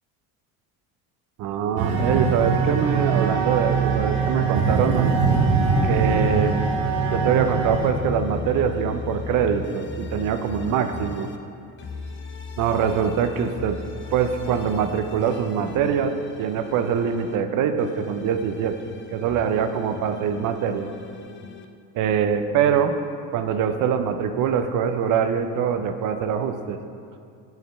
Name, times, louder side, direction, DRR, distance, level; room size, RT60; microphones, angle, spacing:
voice 1, 1.4-5.2 5.8-6.6 7.1-11.3 12.6-13.8 14.1-18.7 19.1-20.9 22.0-22.9 23.3-26.8, right 7 dB, 50° right, 8 dB, 0.5 m, -23 dB
sound 1, 1.8-7.9, right 5 dB, 80° right, 0.9 m, -22 dB
sound 2, 7.9-11.4 11.8-17.4 17.8-21.7, left 5 dB, 30° left, 0.4 m, -38 dB
7.5 x 4.5 x 3.3 m, 2.4 s
supercardioid pair, 100°, 40 cm